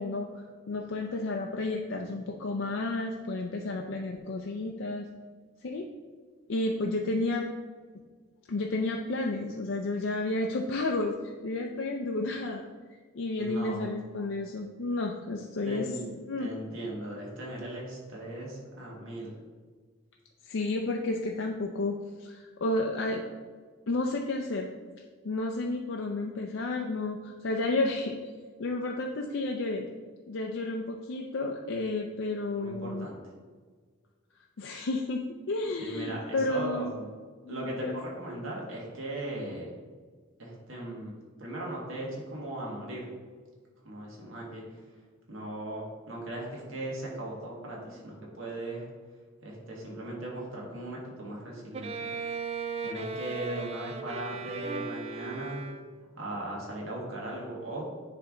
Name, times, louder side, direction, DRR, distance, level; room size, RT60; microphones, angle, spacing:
voice 1, 0.0-5.1 5.6-5.9 6.5-7.5 8.5-11.2 11.4-12.6 13.1-15.9 16.3-16.5 20.4-23.2 23.9-24.7 25.2-28.2 28.6-29.9 30.3-33.1 34.6-36.9 37.4-38.0, left 2 dB, 70° left, 1 dB, 0.5 m, -31 dB
voice 2, 13.4-13.9 15.7-19.3 32.6-33.2 35.8-37.1 37.5-39.7 40.4-41.1 41.4-43.1 43.8-44.6 45.3-48.9 49.4-51.9 52.8-55.6 56.2-58.0, right 1 dB, 85° right, -3 dB, 1.8 m, -38 dB
Bowed string instrument, 51.7-56.2, right 4 dB, 30° right, 0.3 m, -37 dB
9.7 x 3.4 x 3.8 m, 1.5 s
head